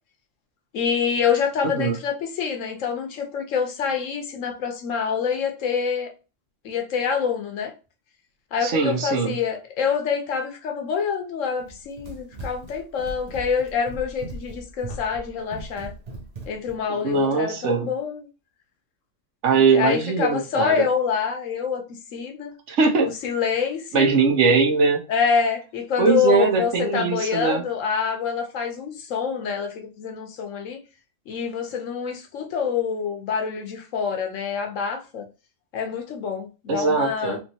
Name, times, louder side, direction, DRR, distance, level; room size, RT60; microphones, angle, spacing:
voice 1, 0.7-6.1 6.6-7.7 8.5-15.9 16.5-18.3 19.5-22.5 23.2-24.1 25.1-30.8 31.3-35.3 35.7-37.4, left 6 dB, 85° left, 1.2 m, -26 dB
voice 2, 1.6-2.0 8.6-9.3 16.9-17.9 19.4-20.8 22.7-23.1 23.9-25.0 26.0-27.6 36.7-37.4, right 4 dB, 70° right, 1.1 m, -21 dB
Run, 11.6-16.8, right 1 dB, 40° right, 0.6 m, -38 dB
3.5 x 3.0 x 2.7 m
omnidirectional pair, 1.3 m